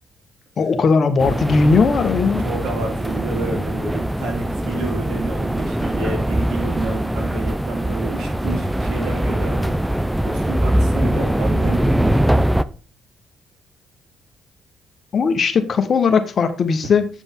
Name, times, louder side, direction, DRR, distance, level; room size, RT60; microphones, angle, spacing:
voice 1, 0.6-2.4 15.1-17.1, left 5 dB, 50° left, 1.2 m, -18 dB
sound 1, 1.2-12.6, right 1 dB, 5° right, 0.4 m, -22 dB
voice 2, 2.4-9.8 10.2-12.5, right 3 dB, 80° right, 3.1 m, -29 dB
8.3 x 5.1 x 3.7 m
cardioid pair, 90°, 0 cm